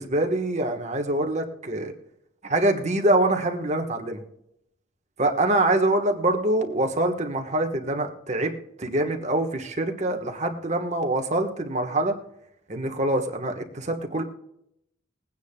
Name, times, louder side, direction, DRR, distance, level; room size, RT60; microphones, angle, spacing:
voice 1, 0.0-1.9 2.4-4.2 5.2-8.5 8.8-12.1 12.7-14.2, right 1 dB, 35° right, 4 dB, 1.3 m, -24 dB
21.0 x 9.4 x 2.3 m, 0.77 s
head